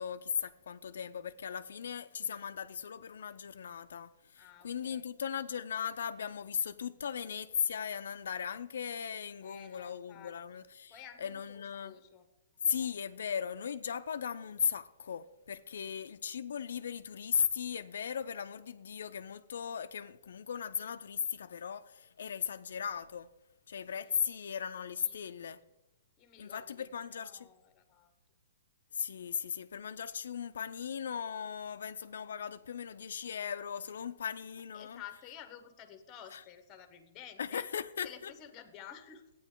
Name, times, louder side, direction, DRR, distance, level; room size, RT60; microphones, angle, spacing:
voice 1, 0.0-10.9 11.2-11.9 12.6-23.3 23.7-25.6 26.4-27.5 28.9-35.0 36.3-36.4 37.4-38.3, left 7 dB, 80° left, 0.4 m, -37 dB
voice 2, 2.2-2.5 4.3-5.1 9.4-10.6 10.9-12.3 15.7-15.9 23.8-24.2 25.0-25.7 26.2-28.1 29.2-29.5 34.7-37.7 38.0-39.3, left 9 dB, 20° left, 1.0 m, -53 dB
13.0 x 9.0 x 3.7 m
hypercardioid pair, 165°, 0 cm